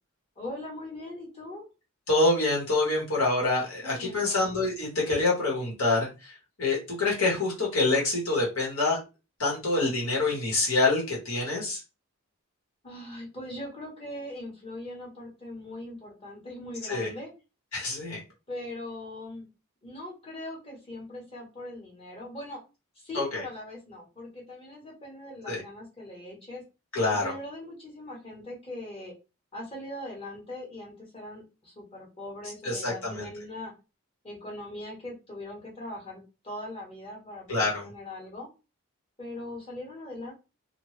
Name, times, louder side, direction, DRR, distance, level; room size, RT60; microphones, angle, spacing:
voice 1, 0.4-1.7 3.8-4.5 12.8-17.3 18.5-19.5 19.8-22.6 22.9-26.6 27.0-29.1 29.5-33.7 34.2-38.5 39.2-40.3, left 1 dB, 25° left, -2 dB, 1.2 m, -40 dB
voice 2, 2.1-9.0 9.4-11.8 16.8-17.1 17.7-18.2 23.1-23.4 25.5-25.6 26.9-27.3 32.6-33.3 37.5-37.9, left 2 dB, 70° left, -3 dB, 1.5 m, -26 dB
2.7 x 2.5 x 3.2 m, 0.29 s
head